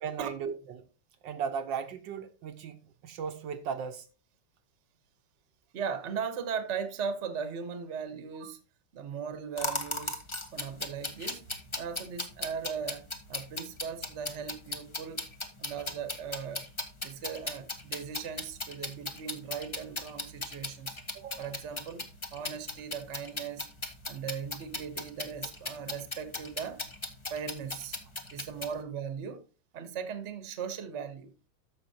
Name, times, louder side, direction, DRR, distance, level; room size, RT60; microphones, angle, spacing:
voice 1, 0.0-0.8 1.2-4.1 8.4-8.5 21.1-21.5, right 6 dB, 70° right, 1.4 m, -37 dB
voice 2, 5.7-8.6 8.9-10.2 10.5-11.5 11.8-15.2 15.6-16.6 17.0-21.0 21.4-22.0 22.3-23.7 24.1-26.8 27.3-28.0 28.3-29.4 29.7-31.3, right 7 dB, 45° right, 1.1 m, -38 dB
sound 1, 9.6-28.8, left 2 dB, 25° left, 0.6 m, -37 dB
13.5 x 5.6 x 2.7 m
omnidirectional pair, 2.1 m